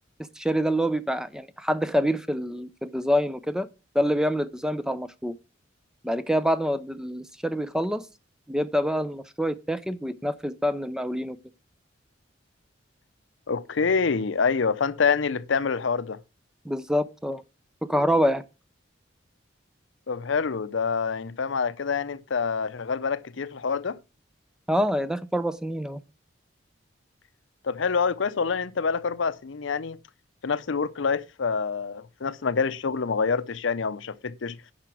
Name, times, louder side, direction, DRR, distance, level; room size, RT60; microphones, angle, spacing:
voice 1, 0.4-3.7 3.9-5.3 6.0-8.1 8.5-11.4 16.7-17.4 17.9-18.4 24.7-26.0, equal, 5° right, 0.4 m, -26 dB
voice 2, 13.5-16.2 20.1-24.0 27.6-30.0 30.4-34.6, left 5 dB, 70° left, 0.6 m, -26 dB
10.5 x 5.0 x 6.1 m
head